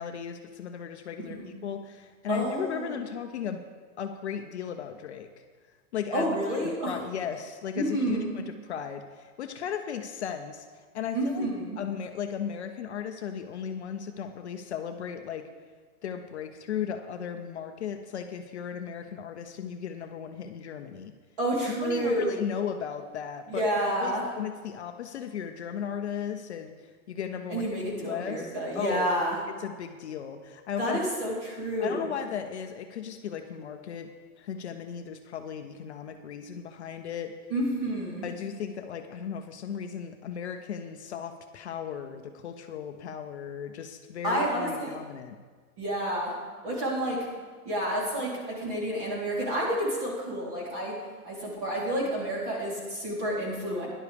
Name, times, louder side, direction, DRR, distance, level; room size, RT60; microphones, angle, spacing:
voice 1, 0.0-3.6 4.0-5.3 5.9-6.3 6.6-10.7 10.9-11.5 11.8-15.4 16.0-21.1 21.7-23.7 24.0-27.7 28.0-29.1 29.6-31.0 31.8-34.1 34.4-37.3 38.2-45.4, left 8 dB, 50° left, 6 dB, 0.6 m, -36 dB
voice 2, 1.2-1.5 2.3-2.9 6.1-7.0 7.8-8.3 11.1-11.8 21.4-22.5 23.5-24.2 27.5-29.4 30.8-32.1 37.5-38.3 44.2-45.0 45.8-46.4 46.6-47.3 47.7-53.9, right 1 dB, 35° right, -4 dB, 3.5 m, -29 dB
16.5 x 11.0 x 3.4 m, 1.5 s
supercardioid pair, 180°, 44 cm